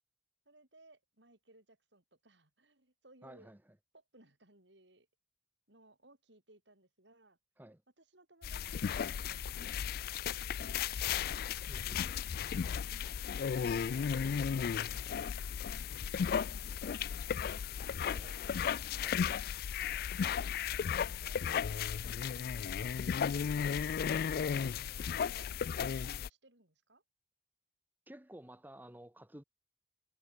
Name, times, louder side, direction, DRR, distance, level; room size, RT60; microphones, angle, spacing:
voice 1, 0.5-3.5 3.9-5.1 5.7-7.4 8.0-11.0 12.3-14.3 14.5-16.6 18.0-18.8 19.2-19.6 20.6-20.7 21.0-21.5 22.0-23.4 24.3-27.0, right 2 dB, 70° right, 7.1 m, -63 dB
voice 2, 3.2-3.6 7.6-7.8 11.7-12.4 18.1-18.3 18.9-19.2 28.1-29.4, right 1 dB, 10° right, 1.2 m, -53 dB
sound 1, 8.4-26.3, left 7 dB, 55° left, 0.3 m, -35 dB
head